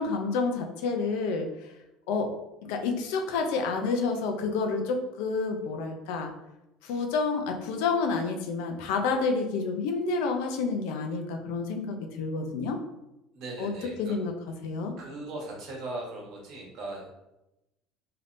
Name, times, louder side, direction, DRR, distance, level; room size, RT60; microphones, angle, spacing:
voice 1, 0.0-1.7 2.1-2.3 2.6-6.3 6.8-12.8 13.6-13.7 14.0-14.3 14.6-14.9, left 4 dB, 85° left, 4 dB, 0.5 m, -29 dB
voice 2, 13.3-14.1 15.0-17.1, right 2 dB, 60° right, -2 dB, 1.2 m, -38 dB
3.4 x 2.8 x 2.5 m, 0.92 s
cardioid pair, 130°, 0 cm